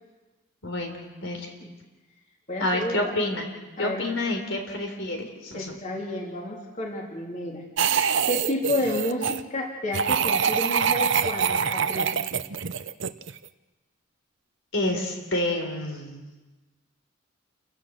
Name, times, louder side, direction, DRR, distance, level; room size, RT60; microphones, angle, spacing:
voice 1, 0.6-1.5 2.6-3.5 3.8-5.7 14.7-16.2, left 1 dB, 70° left, 3 dB, 3.7 m, -28 dB
voice 2, 2.5-3.1 3.8-4.0 5.5-7.6 8.3-12.1, left 1 dB, 35° left, -1 dB, 3.4 m, -30 dB
sound 1, 7.8-9.4 9.9-13.4, right 7 dB, 60° right, 0.7 m, -25 dB
30.0 x 16.0 x 6.4 m, 1.2 s
head